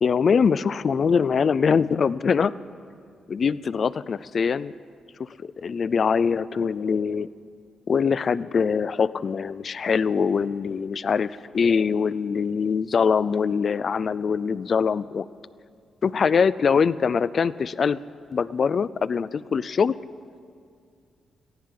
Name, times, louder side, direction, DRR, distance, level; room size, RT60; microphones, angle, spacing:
voice 1, 0.0-2.5 3.3-4.7 5.6-7.3 7.9-15.3 16.0-18.0 18.3-19.9, left 6 dB, 45° left, 18 dB, 0.3 m, -23 dB
22.5 x 16.0 x 3.7 m, 2.2 s
cardioid pair, 135°, 0 cm